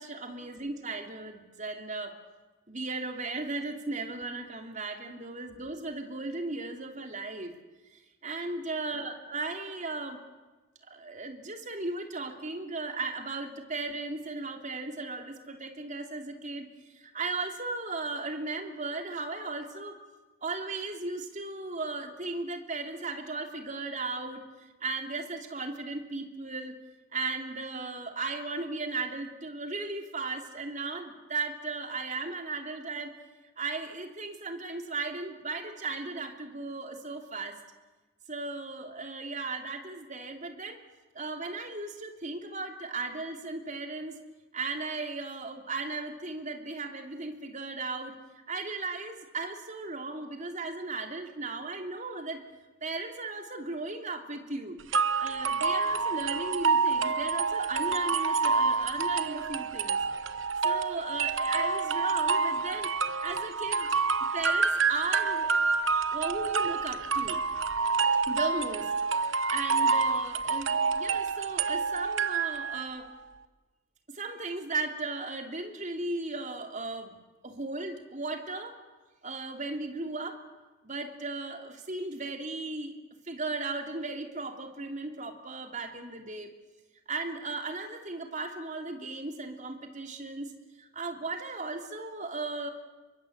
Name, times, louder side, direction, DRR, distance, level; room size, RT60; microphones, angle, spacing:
voice 1, 0.0-2.1 2.7-7.5 8.2-10.2 10.9-16.6 16.9-19.9 20.4-26.7 27.1-33.1 33.6-37.6 38.3-40.8 41.1-44.2 44.5-48.1 48.5-52.4 52.8-54.8 55.2-60.0 60.6-62.9 63.2-64.0 64.3-65.5 66.1-67.4 68.3-68.9 69.5-73.1 74.1-77.1 77.4-78.8 79.2-80.4 80.8-82.9 83.3-86.5 87.1-90.5 90.8-92.7, right 3 dB, 35° right, 4 dB, 3.0 m, -36 dB
sound 1, 54.9-72.8, right 4 dB, 65° right, 1.1 m, -28 dB
28.0 x 23.5 x 8.1 m, 1.2 s
head